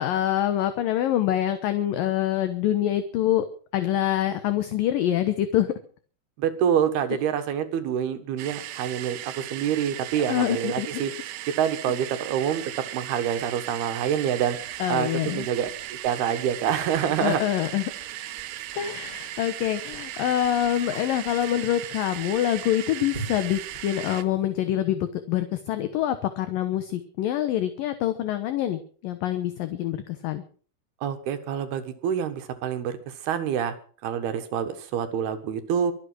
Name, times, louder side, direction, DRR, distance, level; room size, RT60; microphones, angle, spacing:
voice 1, 0.0-3.5 3.7-5.7 10.3-10.9 14.8-15.5 17.2-17.9 18.8-30.4, left 12 dB, 70° left, 10 dB, 2.4 m, -25 dB
voice 2, 6.4-11.1 11.6-12.6 12.9-14.6 14.9-15.7 16.0-17.4 31.0-33.7 34.0-35.9, right 9 dB, 70° right, 9 dB, 3.3 m, -26 dB
sound 1, 8.4-24.2, right 13 dB, 85° right, 1.8 m, -37 dB
Chewing mastication, 14.5-24.7, right 3 dB, 15° right, 2.6 m, -47 dB
24.5 x 8.4 x 6.2 m, 0.43 s
omnidirectional pair, 4.9 m